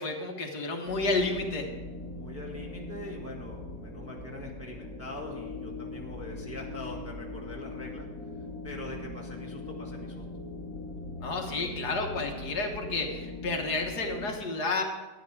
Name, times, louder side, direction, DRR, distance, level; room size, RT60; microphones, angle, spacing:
voice 1, 0.0-1.7 11.2-14.8, left 3 dB, 60° left, 2 dB, 1.8 m, -31 dB
sound 1, 0.9-14.3, left 2 dB, 45° right, 2.9 m, -40 dB
voice 2, 2.1-8.1 8.6-10.2, left 2 dB, 10° right, -2 dB, 1.3 m, -43 dB
12.0 x 9.8 x 4.7 m, 1.2 s
omnidirectional pair, 2.0 m